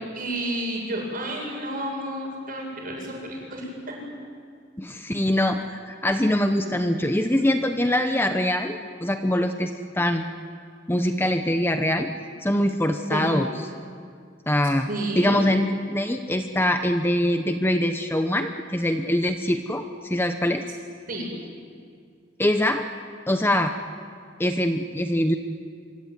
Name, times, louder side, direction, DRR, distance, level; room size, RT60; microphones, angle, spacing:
voice 1, 0.0-3.7 13.1-13.3 14.9-15.3 21.1-21.2, right 1 dB, 50° right, 0 dB, 8.0 m, -30 dB
voice 2, 4.8-10.2 10.9-12.1 12.4-13.7 14.5-14.9 15.2-20.6 22.4-22.8 23.3-23.7 24.4-25.3, left 1 dB, 10° left, 6 dB, 1.0 m, -23 dB
25.0 x 25.0 x 9.5 m, 2.2 s
head